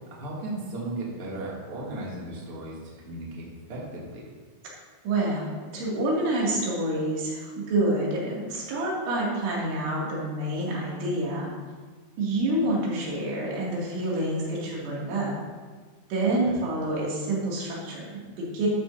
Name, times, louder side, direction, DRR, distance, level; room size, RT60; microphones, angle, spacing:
voice 1, 0.1-4.2 12.5-12.6 16.2-16.6, right 2 dB, 35° right, -6 dB, 3.0 m, -36 dB
voice 2, 5.1-11.5 12.2-15.3 16.1-18.7, right 1 dB, 90° right, -5 dB, 5.2 m, -27 dB
13.5 x 13.0 x 2.8 m, 1.5 s
omnidirectional pair, 5.3 m